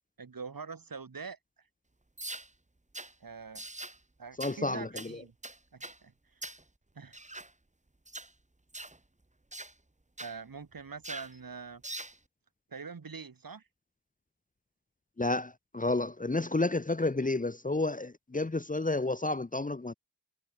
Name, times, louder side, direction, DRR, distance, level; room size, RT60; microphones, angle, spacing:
voice 1, 0.2-1.7 3.2-3.7 4.2-5.3 5.7-6.4 6.9-7.2 10.2-11.8 12.7-13.7, right 5 dB, 50° right, 4.3 m, -44 dB
sound 1, 2.2-2.5 2.9-3.1 3.6-4.0 4.4-4.6 5.0-5.1 5.4-6.0 6.4-6.6 7.1-7.5 8.1-8.3 8.7-9.0 9.5-9.7 10.2-10.4 11.0-11.3 11.8-12.2, right 2 dB, 15° right, 2.4 m, -42 dB
voice 2, 4.4-5.2 15.2-19.9, left 2 dB, 20° left, 1.2 m, -31 dB
cardioid pair, 45°, 44 cm